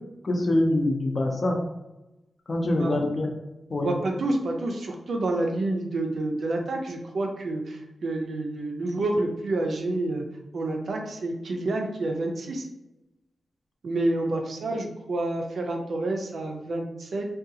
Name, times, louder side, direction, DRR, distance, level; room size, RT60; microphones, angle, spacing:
voice 1, 0.2-1.6 2.5-3.3 3.7-4.0, left 1 dB, 40° left, 1 dB, 0.5 m, -24 dB
voice 2, 2.6-3.0 3.8-10.2 10.5-12.7 13.8-17.3, right 2 dB, 65° right, 2 dB, 0.5 m, -28 dB
3.7 x 2.3 x 2.7 m, 0.94 s
wide cardioid pair, 155°, 0 cm